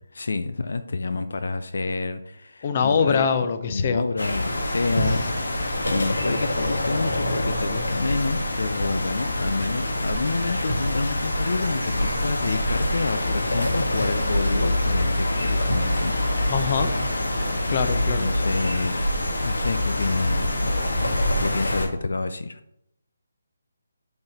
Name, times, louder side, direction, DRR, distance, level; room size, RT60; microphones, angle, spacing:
voice 1, 0.1-3.3 3.7-16.1 17.9-19.1 19.4-20.6 21.3-22.6, left 3 dB, 70° left, 10 dB, 0.6 m, -28 dB
voice 2, 2.6-4.0 16.5-16.9 17.7-18.3, left 6 dB, 40° left, 9 dB, 0.8 m, -23 dB
sound 1, 4.2-21.9, left 1 dB, 90° left, 1.7 m, -25 dB
sound 2, 9.4-18.9, right 3 dB, 55° right, 1.3 m, -43 dB
6.9 x 4.1 x 6.6 m, 0.79 s
figure-of-eight pair, 155°, 0 cm